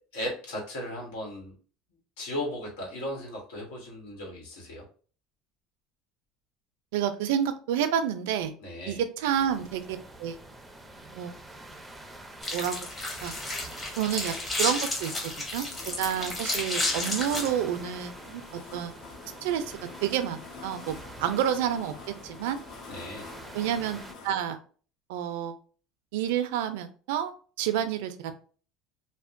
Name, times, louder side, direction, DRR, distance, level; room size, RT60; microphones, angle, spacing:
voice 1, 0.1-1.5 2.2-4.8 8.6-9.0 22.9-23.3, left 1 dB, 90° left, -1 dB, 1.2 m, -36 dB
voice 2, 6.9-8.5 8.9-10.4 11.1-11.3 12.5-12.8 13.2-13.3 14.0-15.1 15.5-15.7 16.0-18.4 18.7-18.9 19.4-19.7 20.0-22.6 23.5-24.0 24.2-24.6 25.1-25.6 26.1-27.3 27.6-28.3, right 9 dB, 85° right, 9 dB, 0.4 m, -29 dB
sound 1, 9.2-24.1, right 2 dB, 10° right, 0.4 m, -47 dB
sound 2, 9.3-24.3, left 4 dB, 65° left, 0.8 m, -49 dB
sound 3, 12.4-17.5, left 2 dB, 20° left, 0.9 m, -32 dB
2.8 x 2.1 x 2.5 m, 0.40 s
supercardioid pair, 125°, 0 cm